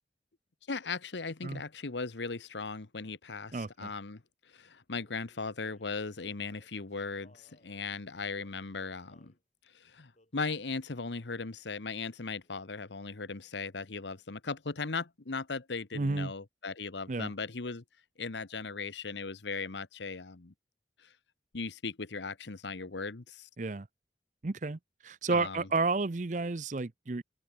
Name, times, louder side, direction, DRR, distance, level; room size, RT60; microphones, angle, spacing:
voice 1, 0.7-4.2 4.5-9.3 9.7-17.8 18.2-20.5 21.0-21.1 21.5-23.5 25.3-25.7, left 4 dB, 85° left, 1.1 m, -38 dB
voice 2, 3.5-3.9 15.9-16.3 17.1-17.3 23.6-23.9 24.4-27.2, right 3 dB, 45° right, 0.6 m, -31 dB
Male singing, 5.0-9.4 10.1-10.6 11.2-11.5 11.7-12.7, left 1 dB, 40° left, 4.9 m, -67 dB
head